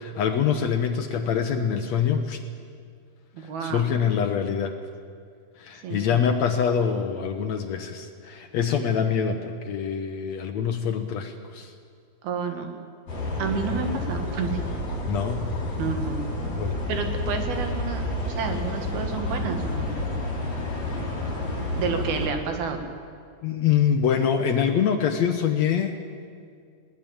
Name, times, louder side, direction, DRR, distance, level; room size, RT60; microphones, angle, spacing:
voice 1, 0.0-2.4 3.6-4.7 5.6-11.7 15.1-15.4 16.6-16.8 23.4-26.0, left 7 dB, 70° left, 6 dB, 1.7 m, -25 dB
voice 2, 3.3-3.9 5.8-6.3 12.2-12.7 13.4-14.6 15.8-16.3 16.9-19.9 21.8-22.8, right 6 dB, 80° right, 5 dB, 3.7 m, -30 dB
sound 1, 13.1-22.3, left 2 dB, 45° left, 7.3 m, -29 dB
20.5 x 18.5 x 8.9 m, 2.2 s
omnidirectional pair, 4.4 m